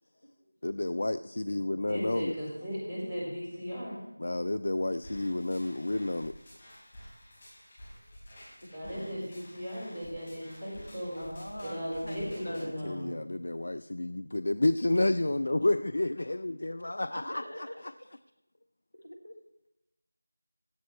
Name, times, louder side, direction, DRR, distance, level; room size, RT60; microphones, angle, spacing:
voice 1, 0.6-2.4 4.2-6.4 12.6-17.4 17.8-17.9, left 2 dB, 50° left, 14 dB, 0.3 m, -30 dB
voice 2, 1.9-4.0 8.7-11.2 11.6-13.1, equal, 10° right, -10 dB, 4.6 m, -37 dB
voice 3, 2.4-2.8 5.6-6.0 8.6-9.0 11.2-12.9 17.1-18.2 19.0-19.4, equal, 75° left, 3 dB, 2.3 m, -45 dB
sound 1, 5.0-12.7, equal, 30° left, 5.7 m, -51 dB
16.5 x 11.0 x 3.3 m, 0.91 s
figure-of-eight pair, 170°, 0 cm